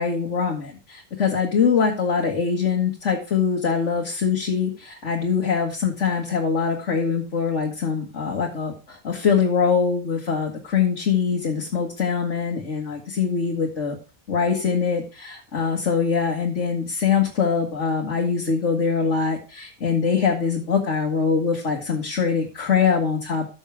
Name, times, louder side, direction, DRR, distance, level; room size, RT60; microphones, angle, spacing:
voice 1, 0.0-14.0 14.3-23.5, left 6 dB, 65° left, -1 dB, 1.9 m, -23 dB
13.5 x 6.4 x 3.3 m, 0.32 s
omnidirectional pair, 1.3 m